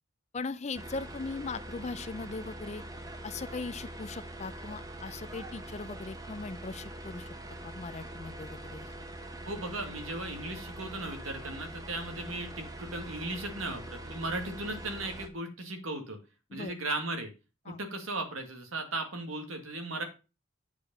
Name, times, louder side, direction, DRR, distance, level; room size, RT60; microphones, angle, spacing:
voice 1, 0.3-2.8 3.2-7.3 7.6-8.9 16.5-16.7 17.7-17.8, left 3 dB, 35° left, 0.4 m, -39 dB
sound 1, 0.7-15.3, right 1 dB, 15° right, 0.9 m, -43 dB
voice 2, 9.5-16.2 16.5-17.3 17.7-20.0, right 2 dB, 85° right, 2.0 m, -36 dB
8.3 x 4.9 x 5.3 m
head